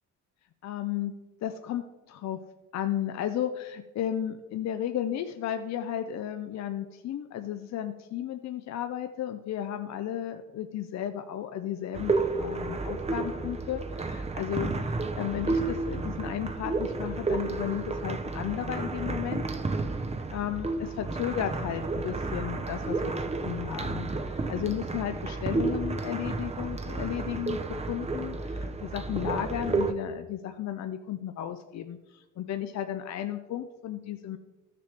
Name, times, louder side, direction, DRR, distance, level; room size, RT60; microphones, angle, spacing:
voice 1, 0.6-1.1 1.4-2.4 2.7-19.4 20.3-23.0 23.4-34.4, left 10 dB, 65° left, 7 dB, 0.6 m, -34 dB
sound 1, 11.9-29.9, right 3 dB, 20° right, 0.7 m, -31 dB
13.5 x 6.7 x 3.4 m, 1.1 s
cardioid pair, 90°, 30 cm